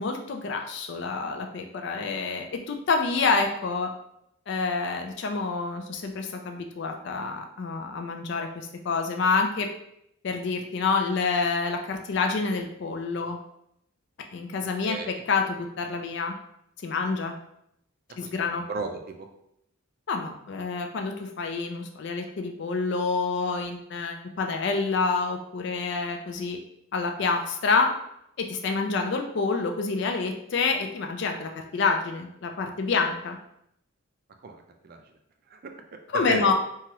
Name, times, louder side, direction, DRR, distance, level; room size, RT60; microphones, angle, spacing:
voice 1, 0.0-3.9 4.5-9.7 10.2-13.4 14.3-16.3 16.8-17.3 18.2-18.6 20.1-26.6 26.9-27.9 28.4-33.4 36.1-36.5, left 4 dB, 55° left, 4 dB, 0.4 m, -27 dB
voice 2, 14.8-15.2 18.2-18.3 18.7-19.3 34.4-35.0 35.5-35.7 36.1-36.5, right 4 dB, 45° right, 5 dB, 0.3 m, -34 dB
2.9 x 2.3 x 2.9 m, 0.76 s
head